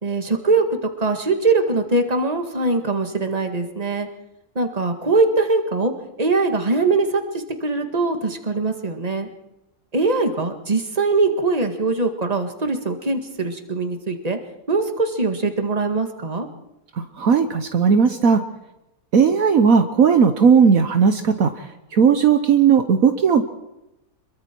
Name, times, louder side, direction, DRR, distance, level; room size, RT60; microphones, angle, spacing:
voice 1, 0.0-4.1 4.6-5.9 6.2-9.3 9.9-14.4 14.7-16.5, right 3 dB, 25° right, 5 dB, 1.9 m, -22 dB
voice 2, 16.9-18.4 19.1-21.6 21.9-23.4, right 6 dB, 65° right, 7 dB, 1.5 m, -16 dB
26.0 x 22.5 x 4.6 m, 0.91 s
omnidirectional pair, 1.6 m